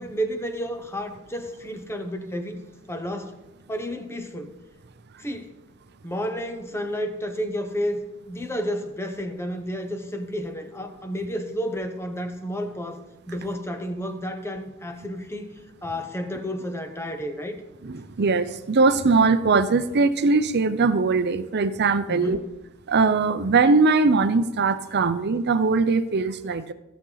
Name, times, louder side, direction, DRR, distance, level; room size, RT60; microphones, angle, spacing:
voice 1, 0.0-2.6 2.9-3.3 3.7-4.5 5.2-5.5 6.0-13.0 13.3-15.5 15.8-17.6 22.1-22.5, equal, 10° left, 6 dB, 1.0 m, -31 dB
voice 2, 17.8-22.4 22.9-26.7, right 4 dB, 50° right, 12 dB, 0.6 m, -21 dB
15.5 x 7.1 x 4.0 m, 1.0 s
head